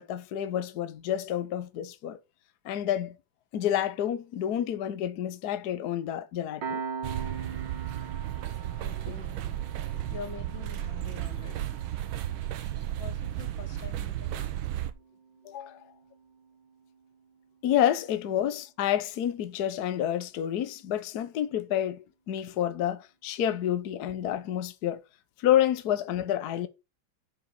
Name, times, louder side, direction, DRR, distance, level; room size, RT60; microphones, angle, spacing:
voice 1, 0.0-2.2 2.6-3.2 3.5-6.8 15.4-15.8 17.6-25.0 25.4-26.7, left 11 dB, 60° left, 1.3 m, -29 dB
Piano, 6.6-17.7, right 5 dB, 65° right, 2.3 m, -44 dB
sound 1, 7.0-14.9, right 12 dB, 85° right, 1.7 m, -34 dB
voice 2, 8.7-9.6 9.9-11.9 13.0-14.4, left 6 dB, 75° left, 1.8 m, -45 dB
7.5 x 6.0 x 5.8 m
omnidirectional pair, 2.1 m